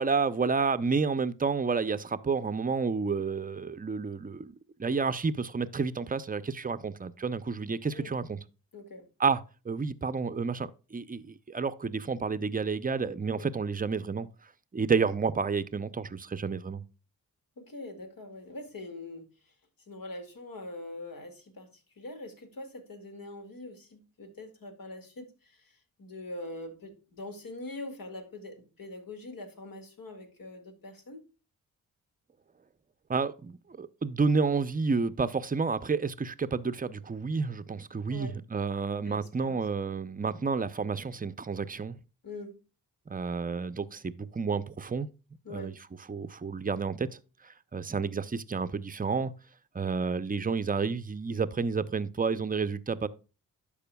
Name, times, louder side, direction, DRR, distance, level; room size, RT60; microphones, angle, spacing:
voice 1, 0.0-4.5 4.8-8.4 9.2-9.4 9.7-14.3 14.7-16.8 33.1-42.0 43.1-45.1 45.5-45.7 46.1-47.1 47.4-49.3 49.7-53.1, right 5 dB, 25° right, 0.6 m, -30 dB
voice 2, 8.7-9.1 13.4-13.5 17.6-19.3 19.9-21.7 22.0-31.2 38.1-38.4 39.1-39.6 42.2-42.6 45.4-45.7, left 2 dB, 65° left, 2.2 m, -43 dB
12.0 x 5.0 x 2.2 m
cardioid pair, 60°, 37 cm